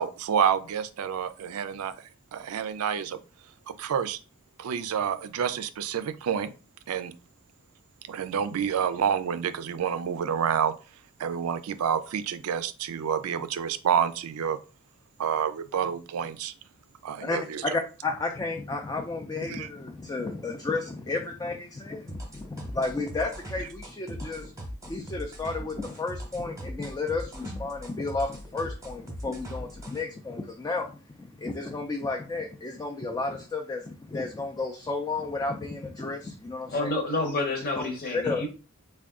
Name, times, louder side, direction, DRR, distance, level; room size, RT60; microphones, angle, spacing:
voice 1, 0.0-2.0 2.3-3.2 3.7-4.2 4.6-6.5 6.9-7.1 8.1-10.7 11.2-14.6 15.2-16.5 17.0-17.6 19.5-19.7, right 8 dB, 80° right, 12 dB, 0.4 m, -28 dB
voice 2, 17.2-24.5 24.8-36.9 37.7-37.9 38.1-38.5, left 3 dB, 15° left, 2 dB, 0.3 m, -32 dB
sound 1, 22.1-30.0, equal, 15° right, 0.8 m, -40 dB
voice 3, 36.7-38.5, left 2 dB, 45° left, 5 dB, 0.8 m, -29 dB
3.5 x 2.2 x 3.6 m, 0.35 s
head